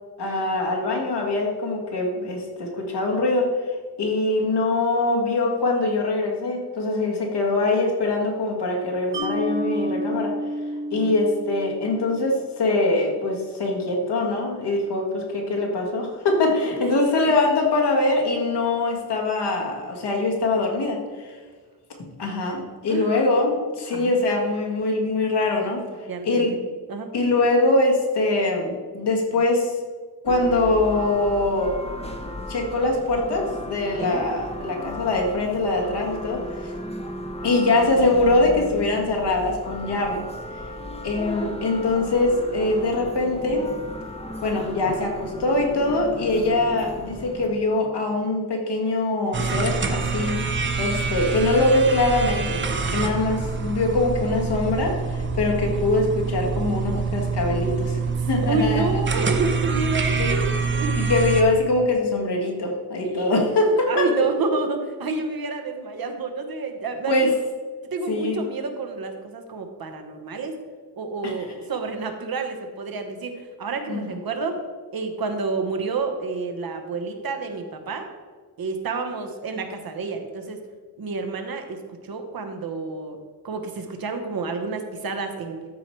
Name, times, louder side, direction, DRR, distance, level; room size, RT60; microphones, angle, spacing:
voice 1, 0.2-10.4 10.9-21.4 22.2-26.5 27.1-29.8 30.2-31.8 32.5-36.7 37.4-40.2 40.5-40.6 41.0-43.7 44.4-58.0 58.3-59.0 59.7-60.3 61.0-64.3 67.1-67.3 68.1-68.5 71.2-71.5 73.9-74.2, left 2 dB, 85° left, 0 dB, 1.8 m, -23 dB
Mallet percussion, 9.1-12.4, right 1 dB, 85° right, 2.3 m, -30 dB
voice 2, 26.1-26.6 26.9-27.1 34.0-34.2 52.9-53.2 58.2-61.0 63.0-63.3 63.9-67.3 67.9-70.6 71.0-74.6 74.9-78.1 78.6-80.6 81.0-83.2 83.4-85.6, right 3 dB, 60° right, 5 dB, 1.1 m, -29 dB
sound 1, 30.3-47.5, equal, 15° left, 0.7 m, -35 dB
sound 2, 49.3-61.4, right 5 dB, 30° right, 0.7 m, -26 dB
13.0 x 4.7 x 4.6 m, 1.5 s
wide cardioid pair, 180°, 39 cm